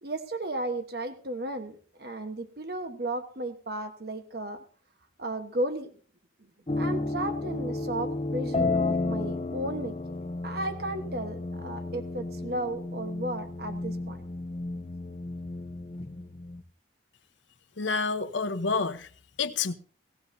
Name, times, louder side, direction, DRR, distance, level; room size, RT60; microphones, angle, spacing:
voice 1, 0.0-4.6 5.2-6.0 6.4-6.5 6.8-10.2 10.4-14.2, right 1 dB, 55° right, 1.2 m, -34 dB
sound 1, 6.7-16.6, left 2 dB, 30° left, 0.7 m, -32 dB
voice 2, 17.8-19.1 19.4-19.8, left 4 dB, 80° left, 1.0 m, -28 dB
18.0 x 15.0 x 2.7 m
head